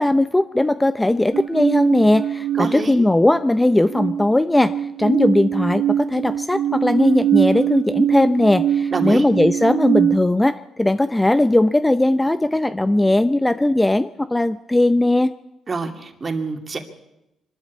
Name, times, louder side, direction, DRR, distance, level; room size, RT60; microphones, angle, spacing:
voice 1, 0.0-4.7 5.0-15.3, left 1 dB, 10° left, 12 dB, 0.6 m, -18 dB
sound 1, 1.3-3.4 3.7-10.2, right 9 dB, 75° right, 2.7 m, -23 dB
voice 2, 2.5-3.0 8.9-9.3 15.7-16.8, right 4 dB, 35° right, 5 dB, 2.6 m, -26 dB
25.0 x 12.5 x 8.4 m, 0.91 s
cardioid pair, 90°, 0 cm